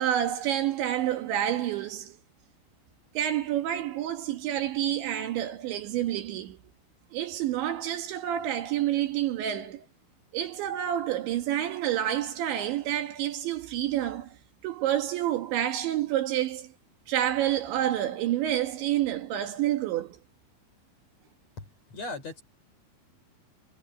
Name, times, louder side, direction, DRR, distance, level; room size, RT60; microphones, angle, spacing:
voice 1, 0.0-2.2 3.2-6.6 7.1-9.9 10.3-14.4 14.6-16.7 17.1-20.2, right 12 dB, 70° right, 3.9 m, -28 dB
voice 2, 21.9-22.4, left 3 dB, 35° left, 4.2 m, -37 dB
omnidirectional pair, 5.7 m